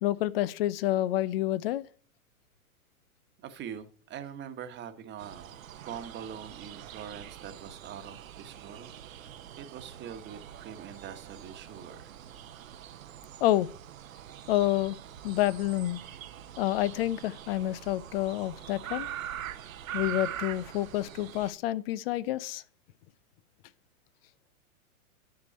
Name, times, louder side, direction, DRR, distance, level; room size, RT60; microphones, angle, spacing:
voice 1, 0.0-1.8 13.4-13.7 14.5-15.0 15.2-16.0 16.6-19.1 19.9-22.6, left 14 dB, 45° left, 0.6 m, -28 dB
voice 2, 3.4-12.1, right 8 dB, 25° right, 1.3 m, -44 dB
sound 1, 5.2-21.5, right 10 dB, 65° right, 1.0 m, -43 dB
10.5 x 6.7 x 4.2 m
hypercardioid pair, 105°, 43 cm